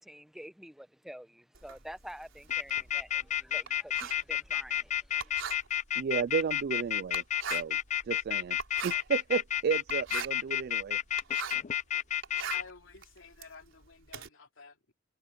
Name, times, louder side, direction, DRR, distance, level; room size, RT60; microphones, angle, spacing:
voice 1, 0.0-5.5, equal, ahead, 1.0 m, -48 dB
Writing, 1.5-11.8 12.1-14.3, right 7 dB, 85° right, 3.7 m, -42 dB
sound 1, 2.5-12.6, left 11 dB, 40° left, 0.4 m, -30 dB
voice 2, 6.0-7.2 7.5-7.8 8.0-8.6 8.8-11.0, right 6 dB, 55° right, 0.3 m, -32 dB
voice 3, 12.3-14.9, left 4 dB, 85° left, 3.0 m, -52 dB
head